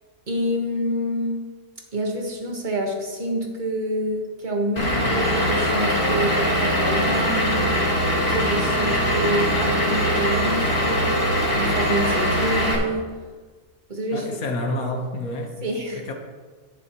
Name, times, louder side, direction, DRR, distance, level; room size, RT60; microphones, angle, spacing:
voice 1, 0.3-1.4 1.9-7.8 8.2-11.2 11.5-13.1 13.9-14.3 14.8-14.9 15.2-16.1, right 1 dB, 35° right, 1 dB, 1.4 m, -27 dB
Vehicle / Engine, 4.8-12.8, equal, 65° left, 2.9 m, -22 dB
voice 2, 14.1-15.6 15.9-16.1, left 1 dB, 80° left, 3 dB, 1.6 m, -29 dB
11.0 x 9.8 x 3.0 m, 1.5 s
omnidirectional pair, 1.5 m